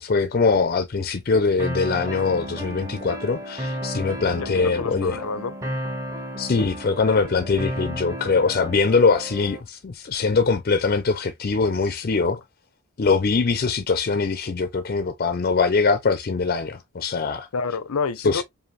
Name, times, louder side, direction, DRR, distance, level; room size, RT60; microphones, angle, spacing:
voice 1, 0.0-5.2 6.4-12.4 13.0-17.5 18.2-18.4, left 4 dB, 45° left, 0.4 m, -22 dB
sound 1, 1.6-9.6, equal, 15° right, 0.8 m, -33 dB
voice 2, 4.4-5.6 17.5-18.4, left 5 dB, 90° left, 0.6 m, -28 dB
5.0 x 2.6 x 3.1 m
head